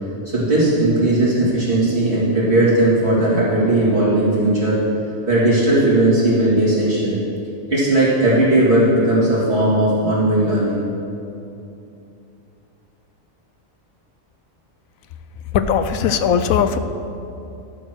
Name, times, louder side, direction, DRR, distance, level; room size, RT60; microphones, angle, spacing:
voice 1, 0.3-4.8 5.3-7.2 7.7-10.8, right 1 dB, 50° right, -11 dB, 3.2 m, -17 dB
voice 2, 15.5-16.8, left 7 dB, 85° left, 10 dB, 1.1 m, -18 dB
12.5 x 6.4 x 6.3 m, 2.7 s
omnidirectional pair, 1.4 m